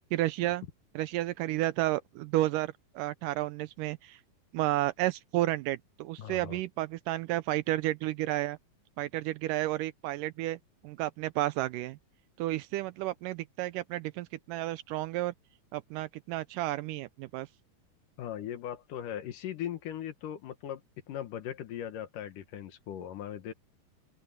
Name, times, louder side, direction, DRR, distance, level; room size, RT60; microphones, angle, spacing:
voice 1, 0.1-0.6 1.0-4.2 4.5-8.6 9.0-10.6 10.8-12.0 12.4-15.3 15.7-17.5, right 16 dB, 80° right, 2.0 m, -31 dB
voice 2, 6.2-6.6 18.2-20.8 21.1-23.5, left 10 dB, 70° left, 2.8 m, -39 dB
open air
omnidirectional pair, 4.0 m